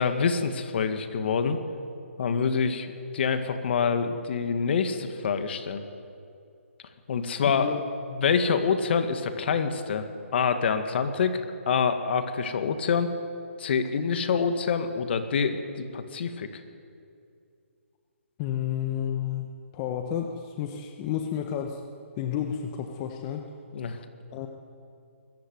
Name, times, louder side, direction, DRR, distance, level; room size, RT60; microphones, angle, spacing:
voice 1, 0.0-1.6 2.2-2.9 3.1-5.8 7.1-7.7 8.1-10.1 10.3-11.4 11.7-13.1 13.6-16.5 23.7-24.0, left 6 dB, 50° left, 8 dB, 2.0 m, -26 dB
voice 2, 7.4-7.8 18.4-21.8 22.2-23.4 24.3-24.5, left 9 dB, 25° left, 4 dB, 1.2 m, -31 dB
22.0 x 14.0 x 9.6 m, 2.5 s
hypercardioid pair, 150°, 7 cm